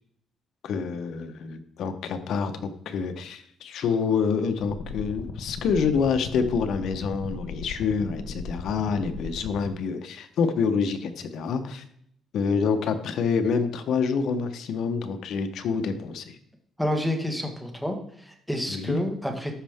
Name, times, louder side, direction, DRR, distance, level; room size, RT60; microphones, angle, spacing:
voice 1, 0.6-11.8 12.3-16.4 18.7-19.0, left 5 dB, 70° left, 8 dB, 1.0 m, -27 dB
sound 1, 4.6-9.7, left 4 dB, 85° left, 1.3 m, -37 dB
voice 2, 16.8-19.5, left 1 dB, ahead, 4 dB, 1.6 m, -29 dB
13.0 x 5.4 x 3.6 m, 0.70 s
cardioid pair, 115°, 0 cm